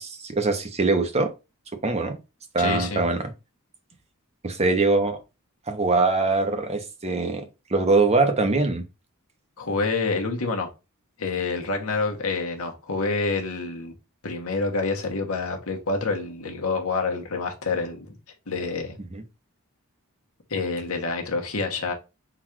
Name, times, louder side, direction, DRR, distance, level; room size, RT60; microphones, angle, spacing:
voice 1, 0.0-1.3 1.8-2.2 2.5-3.2 4.4-5.2 5.7-7.4 7.7-8.8 19.1-19.2, right 3 dB, 30° right, 0.7 m, -22 dB
voice 2, 2.6-3.0 9.6-10.7 11.2-13.9 14.2-18.2 18.5-19.0 20.5-21.9, left 3 dB, 70° left, 1.1 m, -27 dB
3.9 x 2.5 x 4.4 m
head